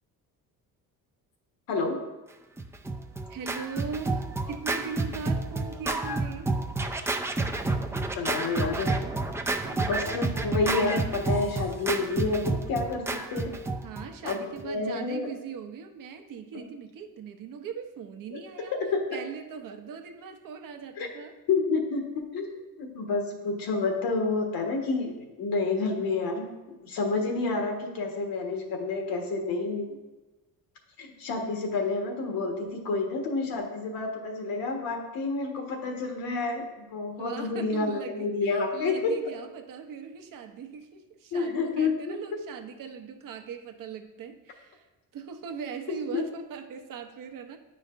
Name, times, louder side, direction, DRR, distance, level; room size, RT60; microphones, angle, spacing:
Scratching (performance technique), 2.6-14.7, right 2 dB, 10° right, 0.3 m, -30 dB
voice 1, 3.3-6.5 13.8-18.8 19.1-21.4 37.2-44.9 45.1-47.6, right 6 dB, 60° right, 6 dB, 0.8 m, -40 dB
voice 2, 8.1-9.0 9.6-13.5 14.2-15.3 16.5-16.6 18.3-18.4 18.9-19.0 21.0-21.1 21.5-30.0 31.0-39.1 41.3-42.2 46.1-46.2, left 3 dB, 70° left, 2 dB, 1.3 m, -29 dB
9.0 x 4.9 x 2.5 m, 1.1 s
cardioid pair, 105°, 37 cm